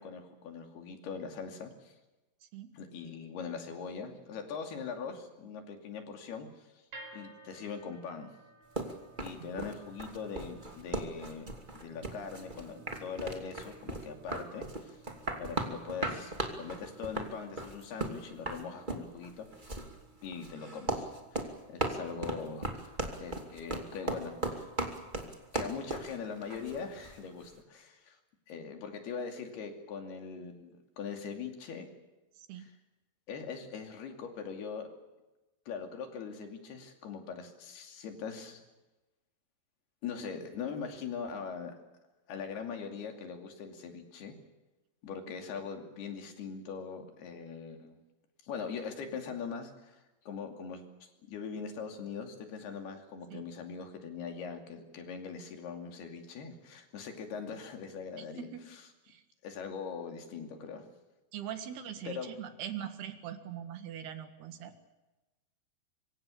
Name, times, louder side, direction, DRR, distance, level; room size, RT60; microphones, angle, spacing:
voice 1, 0.0-1.9 2.7-6.5 7.1-8.3 9.2-11.5 11.7-15.0 15.4-19.8 20.2-22.9 23.2-24.7 25.5-28.2 28.5-31.9 32.6-32.7 33.3-34.9 35.7-38.6 40.0-41.7 42.3-44.3 45.0-48.0 48.4-58.8 59.4-60.8 62.1-62.3, left 6 dB, 75° left, 4 dB, 4.6 m, -41 dB
sound 1, 6.9-23.1, right 3 dB, 50° right, 5.4 m, -57 dB
sound 2, 8.7-27.2, right 2 dB, 15° right, 2.0 m, -37 dB
voice 2, 61.3-64.7, right 10 dB, 80° right, 8 dB, 3.8 m, -41 dB
25.5 x 24.5 x 7.1 m, 1.1 s
omnidirectional pair, 4.6 m